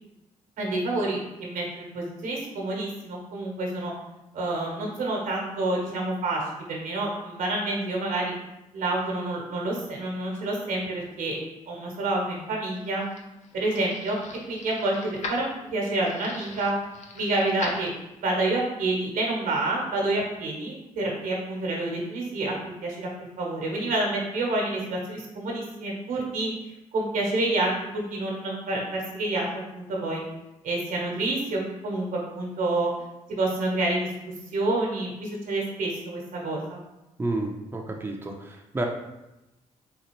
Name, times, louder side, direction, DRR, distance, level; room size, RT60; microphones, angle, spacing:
voice 1, 0.6-3.9 4.3-6.4 6.7-8.3 8.7-11.4 11.7-13.0 13.5-14.2 14.5-16.7 17.1-17.9 18.2-22.5 22.8-23.1 23.4-26.5 26.9-29.5 29.7-30.2 30.6-32.9 33.3-34.1 34.5-36.8, right 2 dB, 75° right, -1 dB, 1.1 m, -28 dB
sound 1, 12.4-18.4, left 3 dB, 55° left, 0.7 m, -40 dB
voice 2, 37.2-38.9, right 2 dB, 15° right, 1 dB, 0.5 m, -30 dB
4.0 x 2.4 x 3.0 m, 0.94 s
supercardioid pair, 55°, 14 cm